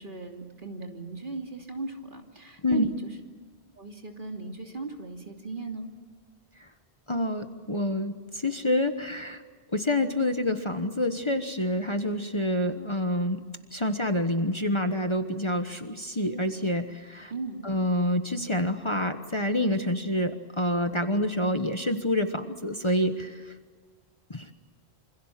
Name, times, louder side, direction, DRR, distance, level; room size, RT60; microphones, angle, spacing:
voice 1, 0.0-3.2 3.8-5.9 17.3-17.7, right 3 dB, 50° right, 2 dB, 3.2 m, -37 dB
voice 2, 7.1-9.4 9.7-13.4 13.7-17.3 17.6-23.3 24.3-24.5, left 1 dB, 30° left, 7 dB, 1.3 m, -27 dB
27.5 x 26.0 x 7.5 m, 1.5 s
omnidirectional pair, 1.1 m